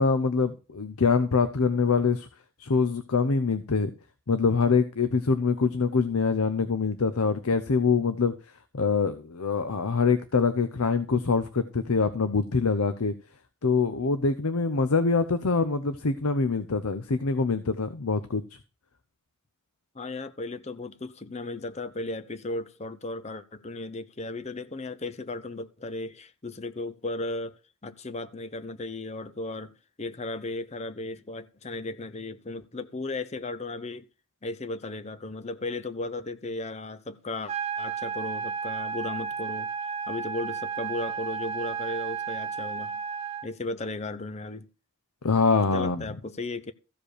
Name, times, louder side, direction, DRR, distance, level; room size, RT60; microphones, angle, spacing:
voice 1, 0.0-2.3 2.6-3.9 4.3-8.3 8.7-13.1 13.6-18.4 45.2-46.0, left 4 dB, 85° left, 0.8 m, -24 dB
voice 2, 19.9-27.5 27.8-29.7 30.0-34.1 34.4-39.7 40.1-43.0 43.4-44.7 45.7-46.7, left 2 dB, 30° left, 0.7 m, -35 dB
sound 1, 37.5-43.5, right 6 dB, 30° right, 1.0 m, -33 dB
14.5 x 5.1 x 6.6 m
head